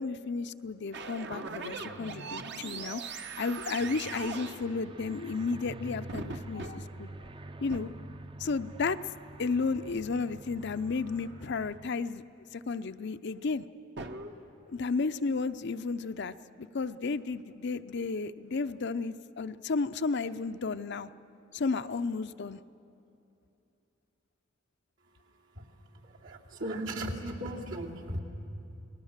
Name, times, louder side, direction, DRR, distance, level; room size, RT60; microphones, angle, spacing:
voice 1, 0.0-3.0 3.4-7.1 7.6-7.9 8.4-9.0 9.4-12.2 12.5-13.6 14.7-21.1 21.5-22.6, left 4 dB, 60° left, 12 dB, 0.6 m, -33 dB
sound 1, 0.9-4.6 5.5-6.8 7.2-7.3 7.7-7.9 8.4-8.6 11.0-11.4 14.0-14.3, right 4 dB, 60° right, 1.1 m, -41 dB
Aircraft, 3.8-11.9, right 2 dB, 25° right, 0.6 m, -46 dB
voice 2, 25.5-28.2, right 1 dB, 75° right, -2 dB, 2.7 m, -37 dB
29.5 x 20.0 x 7.3 m, 2.8 s
head